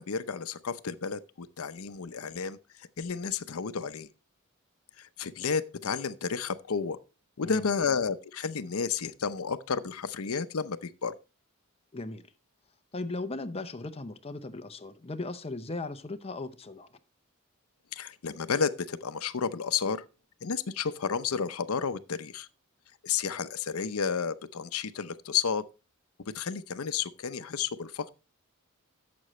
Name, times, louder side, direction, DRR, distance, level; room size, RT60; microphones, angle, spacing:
voice 1, 0.0-4.1 5.0-7.0 7.4-11.1 17.9-20.0 20.4-22.5 23.0-25.6 26.3-28.1, left 6 dB, 85° left, 0.7 m, -32 dB
voice 2, 11.9-12.2 12.9-16.9, left 2 dB, 30° left, 0.7 m, -37 dB
11.5 x 7.7 x 3.1 m
head